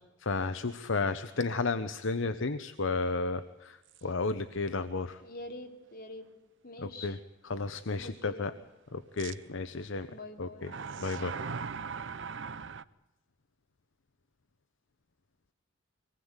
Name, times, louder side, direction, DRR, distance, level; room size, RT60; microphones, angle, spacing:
voice 1, 0.2-5.2 6.8-7.2 7.5-8.5 8.9-10.1 10.4-10.7 11.0-11.4, left 3 dB, 65° left, 11 dB, 0.9 m, -33 dB
sound 1, 3.9-4.0 4.6-4.7 9.2-9.3 10.6-12.8, right 5 dB, 65° right, 0.8 m, -39 dB
voice 2, 5.2-6.2 6.6-7.2 8.0-8.6 10.1-10.7, left 2 dB, 50° left, 3 dB, 3.1 m, -45 dB
24.5 x 19.5 x 8.1 m, 1.1 s
head